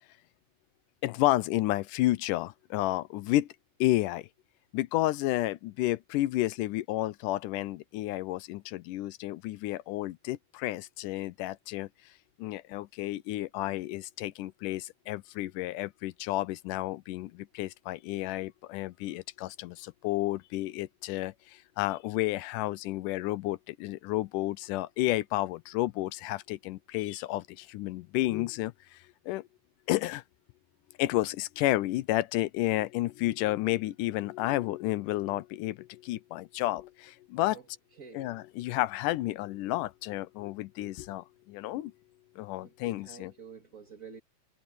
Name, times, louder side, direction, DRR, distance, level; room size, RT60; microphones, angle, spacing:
voice 1, 1.0-3.5 3.8-4.3 4.7-11.9 12.4-29.0 29.3-29.5 29.9-30.2 31.0-37.6 38.1-41.9 42.4-43.3, left 17 dB, 85° left, 2.2 m, -31 dB
voice 2, 38.0-38.4 42.6-44.2, right 6 dB, 30° right, 2.2 m, -49 dB
omnidirectional pair, 3.8 m